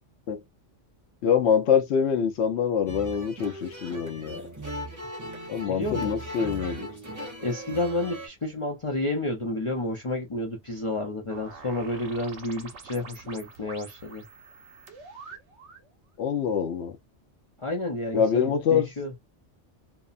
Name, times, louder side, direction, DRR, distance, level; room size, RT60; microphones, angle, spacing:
voice 1, 1.2-4.4 5.5-6.9 16.2-17.0 18.1-18.9, left 7 dB, 70° left, 0.9 m, -25 dB
sound 1, 2.9-8.3, right 1 dB, 20° right, 0.6 m, -38 dB
voice 2, 5.7-6.1 7.4-14.2 17.6-19.1, left 2 dB, 35° left, 0.6 m, -30 dB
sound 2, 11.3-15.9, right 4 dB, 75° right, 1.0 m, -46 dB
2.8 x 2.1 x 2.4 m
omnidirectional pair, 1.2 m